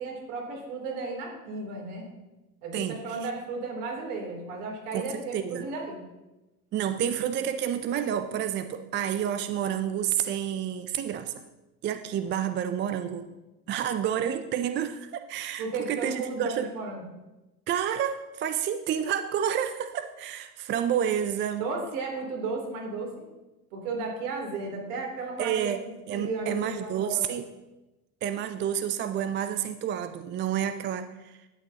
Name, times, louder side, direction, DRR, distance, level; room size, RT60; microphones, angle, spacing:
voice 1, 0.0-2.0 2.6-6.0 15.6-17.0 21.6-23.1 23.7-25.7 26.1-27.3, right 3 dB, 65° right, 0 dB, 3.2 m, -34 dB
voice 2, 2.7-3.3 4.9-5.7 6.7-11.3 11.8-13.3 13.7-16.7 17.7-21.7 25.4-27.5 28.2-31.4, right 9 dB, 25° right, 10 dB, 0.4 m, -29 dB
11.5 x 8.7 x 2.9 m, 1.0 s
hypercardioid pair, 75°, 47 cm